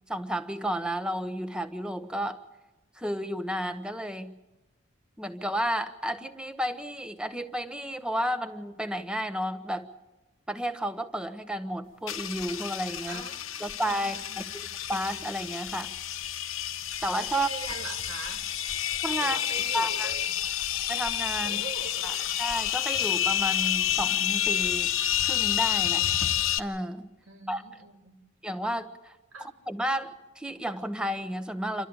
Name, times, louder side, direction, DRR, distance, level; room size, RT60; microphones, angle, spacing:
voice 1, 0.1-2.4 3.0-4.3 5.2-9.9 10.5-13.2 13.6-15.9 17.0-17.5 19.0-19.4 19.7-20.1 20.9-21.6 22.0-22.1 22.4-24.9 25.3-26.3 26.6-27.1 27.5-27.6 28.4-29.2 29.7-31.9, equal, 5° right, 1.0 m, -32 dB
sound 1, 12.1-26.6, left 11 dB, 75° left, 1.1 m, -29 dB
voice 2, 13.1-14.7 17.3-18.5 19.2-20.4 21.4-22.3 27.2-28.2 29.3-29.5, right 5 dB, 85° right, 2.3 m, -43 dB
28.0 x 13.0 x 8.8 m
head